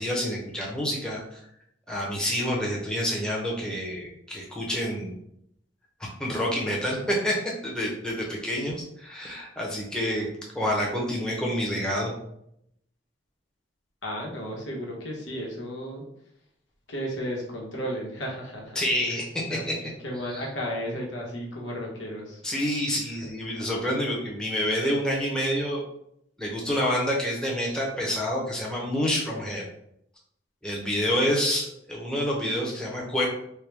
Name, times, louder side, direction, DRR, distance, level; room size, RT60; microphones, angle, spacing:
voice 1, 0.0-1.4 1.9-5.1 6.0-7.4 7.6-10.3 10.5-12.1 18.7-19.7 20.2-20.4 22.4-25.8 26.4-29.6 30.6-33.3, equal, 5° left, -4 dB, 0.7 m, -28 dB
voice 2, 14.0-16.0 16.9-18.8 19.1-19.2 19.5-19.6 20.0-22.4, equal, 85° left, -2 dB, 1.1 m, -33 dB
4.5 x 2.2 x 3.4 m, 0.75 s
head